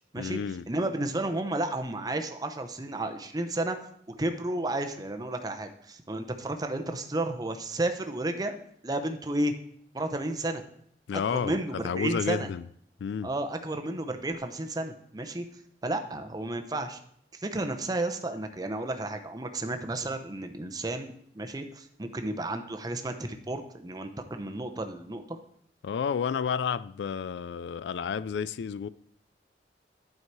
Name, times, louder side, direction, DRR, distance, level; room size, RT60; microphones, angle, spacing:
voice 1, 0.2-0.7 11.1-12.6 13.0-13.3 25.8-28.9, left 6 dB, 80° left, 0.3 m, -31 dB
voice 2, 0.7-8.6 8.8-9.5 9.9-10.6 11.1-12.5 13.2-15.4 15.8-17.0 17.4-25.4, right 2 dB, 20° right, 0.7 m, -32 dB
11.0 x 4.7 x 4.6 m
head